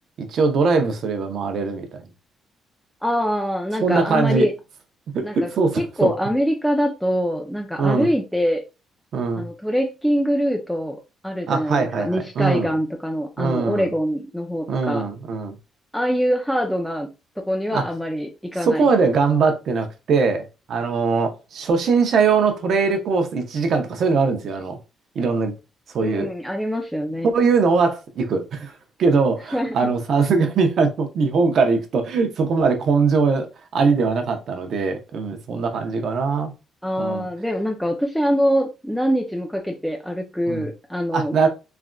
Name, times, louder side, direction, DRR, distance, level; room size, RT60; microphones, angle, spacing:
voice 1, 0.2-1.9 3.8-4.5 5.1-6.1 7.8-8.1 9.1-9.5 11.5-12.7 13.4-13.9 14.7-15.6 17.7-17.8 18.6-24.8 25.1-25.5 25.9-26.3 27.3-28.7 29.0-36.5 37.0-37.3 40.5-40.7 41.1-41.5, right 4 dB, 65° right, 0.7 m, -21 dB
voice 2, 3.0-4.5 5.2-5.5 5.8-8.6 9.4-15.0 15.9-17.1 17.4-18.9 26.0-27.3 29.5-29.9 36.8-41.4, equal, ahead, 0.4 m, -24 dB
3.3 x 2.4 x 2.2 m
cardioid pair, 90°, 0 cm